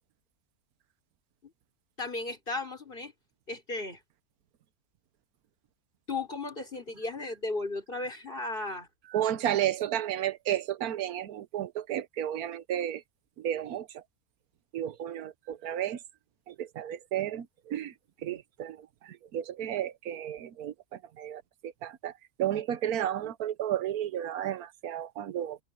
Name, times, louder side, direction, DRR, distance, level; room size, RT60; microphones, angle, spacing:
voice 1, 2.0-3.1 3.5-4.0 6.1-8.9 18.2-18.4, left 3 dB, 35° left, 4.5 m, -35 dB
voice 2, 9.1-13.0 13.4-14.0 14.7-16.0 16.5-17.9 18.2-18.8 19.0-20.7 21.2-22.1 22.4-25.6, right 11 dB, 85° right, 1.3 m, -32 dB
omnidirectional pair, 1.5 m